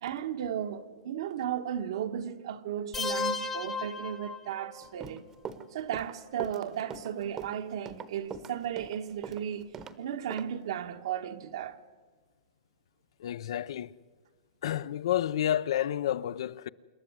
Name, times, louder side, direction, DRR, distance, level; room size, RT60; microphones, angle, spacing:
voice 1, 0.0-5.2 5.7-9.7 10.0-11.8, right 9 dB, 60° right, 1.4 m, -35 dB
sound 1, 2.9-4.9, left 4 dB, 10° left, 1.0 m, -34 dB
Run, 4.8-10.0 10.3-10.5, right 6 dB, 20° right, 1.0 m, -41 dB
voice 2, 13.2-13.9 14.6-16.7, left 11 dB, 65° left, 0.6 m, -30 dB
26.5 x 12.0 x 9.4 m
hypercardioid pair, 160°, 3 cm